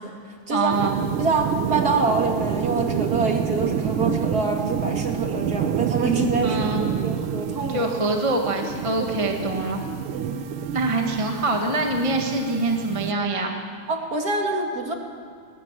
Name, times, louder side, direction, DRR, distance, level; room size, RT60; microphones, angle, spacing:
voice 1, 0.5-1.0 6.4-6.9 7.7-9.8 10.6-13.6, right 2 dB, 20° right, 2 dB, 0.9 m, -24 dB
sound 1, 0.7-13.1, right 8 dB, 70° right, 1.4 m, -28 dB
voice 2, 1.2-7.9 10.1-10.4 13.9-14.9, right 3 dB, 35° right, 2 dB, 2.3 m, -25 dB
20.5 x 19.0 x 7.5 m, 2.2 s
omnidirectional pair, 3.3 m